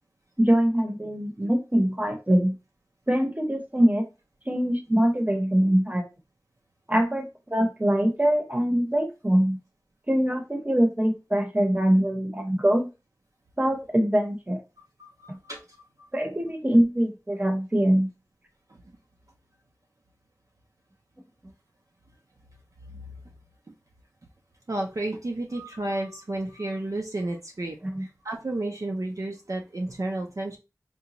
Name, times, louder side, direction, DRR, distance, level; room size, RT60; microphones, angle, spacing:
voice 1, 0.4-2.6 3.1-4.0 4.5-6.1 6.9-9.6 10.1-12.9 13.6-14.6 15.3-15.4 16.1-18.1 27.8-28.0, equal, 25° right, 4 dB, 0.8 m, -23 dB
voice 2, 14.8-16.1 22.9-23.0 24.7-30.6, right 2 dB, 60° right, 1 dB, 0.5 m, -32 dB
3.9 x 2.2 x 2.9 m, 0.28 s
wide cardioid pair, 50°, 6 cm